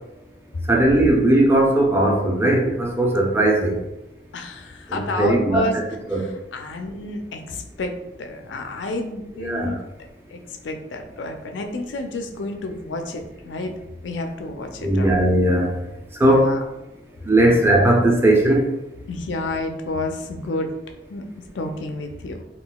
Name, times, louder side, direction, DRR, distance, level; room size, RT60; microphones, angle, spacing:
voice 1, 0.7-3.8 4.9-5.8 6.1-6.2 9.4-9.7 14.8-15.7 16.2-16.5 17.2-18.7, right 1 dB, 15° right, 0 dB, 0.5 m, -18 dB
voice 2, 4.3-5.8 6.1-9.8 10.3-13.7 14.0-15.1 16.2-16.6 17.4-17.9 19.1-20.7 21.1-21.2 21.5-22.4, left 2 dB, 85° left, 5 dB, 0.4 m, -30 dB
3.7 x 2.3 x 2.2 m, 0.94 s
head